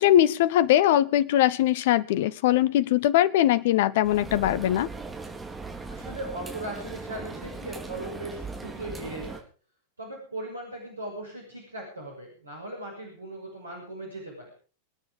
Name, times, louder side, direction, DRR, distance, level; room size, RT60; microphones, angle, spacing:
voice 1, 0.0-4.9, left 12 dB, 55° left, 20 dB, 1.0 m, -21 dB
sound 1, 4.0-9.4, right 3 dB, 10° right, 4.0 m, -39 dB
voice 2, 5.9-9.4 10.0-14.5, right 1 dB, 80° right, 0 dB, 6.6 m, -38 dB
26.0 x 9.7 x 5.2 m, 0.39 s
figure-of-eight pair, 90°, 0 cm